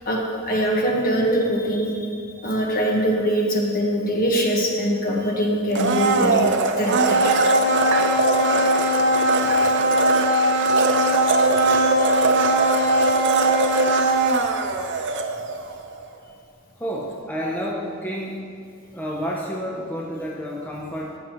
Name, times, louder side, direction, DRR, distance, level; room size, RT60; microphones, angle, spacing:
voice 1, 0.5-2.1 2.4-6.5 6.8-7.5 9.5-9.7 11.5-12.1, equal, 45° left, -1 dB, 1.4 m, -23 dB
Domestic sounds home sounds, 5.7-15.7 16.0-16.1, right 2 dB, 60° right, 0.6 m, -19 dB
voice 2, 16.8-18.5 18.9-21.2, equal, 10° left, -3 dB, 0.6 m, -30 dB
13.5 x 7.1 x 3.0 m, 2.2 s
head